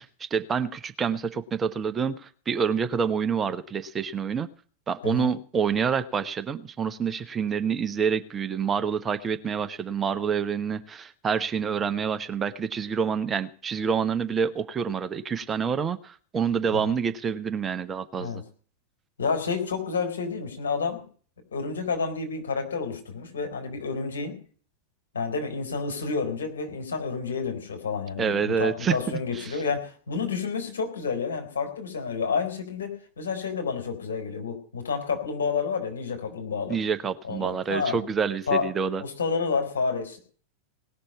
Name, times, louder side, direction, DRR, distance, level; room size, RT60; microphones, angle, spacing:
voice 1, 0.0-4.5 4.9-18.4 28.2-29.6 36.7-39.0, right 6 dB, 20° right, 11 dB, 1.0 m, -27 dB
voice 2, 19.2-21.0 21.5-24.4 25.1-36.8 37.2-38.0 38.5-38.7 39.0-40.2, left 5 dB, 65° left, 3 dB, 4.2 m, -29 dB
18.5 x 6.7 x 9.5 m, 0.44 s
figure-of-eight pair, 90°, 0 cm